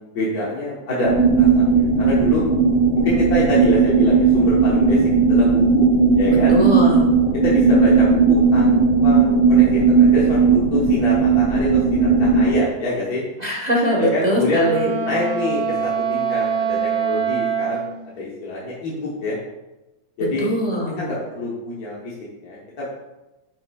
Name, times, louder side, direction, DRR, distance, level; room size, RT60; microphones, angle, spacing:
voice 1, 0.0-2.4 3.0-5.9 6.2-6.6 7.3-13.2 14.0-14.7 15.1-19.4 20.2-20.5 21.0-22.1 22.4-22.9, left 2 dB, 60° left, -6 dB, 1.6 m, -26 dB
sound 1, 1.0-12.5, right 5 dB, 30° left, 2.1 m, -16 dB
voice 2, 6.3-7.1 7.4-7.5 13.4-14.9 20.4-21.0, equal, 30° right, -3 dB, 0.8 m, -21 dB
Wind instrument woodwind instrument, 14.6-18.0, right 6 dB, 65° right, 1.3 m, -24 dB
9.5 x 5.4 x 2.3 m, 1.0 s
omnidirectional pair, 1.9 m